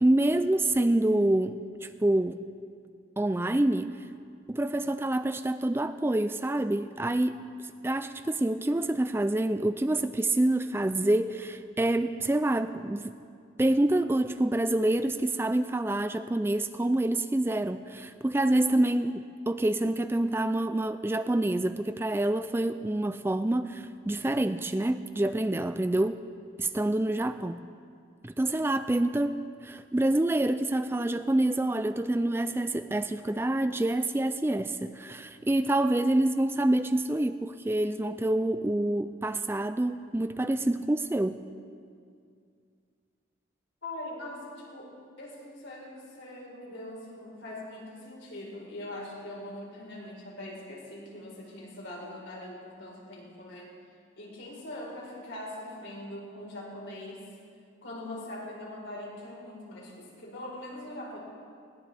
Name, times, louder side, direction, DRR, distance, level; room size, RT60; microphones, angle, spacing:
voice 1, 0.0-2.4 3.2-4.0 4.5-7.5 7.8-13.2 13.6-26.2 26.6-27.6 28.2-41.4, right 1 dB, 10° right, 11 dB, 0.3 m, -27 dB
voice 2, 43.8-53.7 54.2-57.3 57.8-61.2, left 1 dB, 80° left, -3 dB, 4.5 m, -42 dB
20.5 x 18.5 x 3.5 m, 2.3 s
head